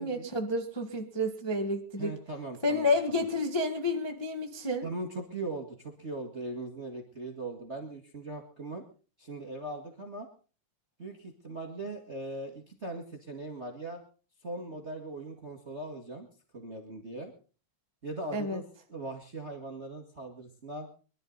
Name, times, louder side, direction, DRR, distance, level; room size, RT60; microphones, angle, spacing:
voice 1, 0.0-2.1 2.6-4.9 18.3-18.6, left 2 dB, 40° left, 3 dB, 0.3 m, -30 dB
voice 2, 2.0-3.2 4.8-8.8 9.2-10.3 11.0-14.0 14.4-16.3 16.5-17.3 18.0-18.6 18.9-20.9, right 2 dB, 25° right, 4 dB, 1.6 m, -40 dB
23.0 x 12.0 x 4.0 m, 0.37 s
omnidirectional pair, 3.7 m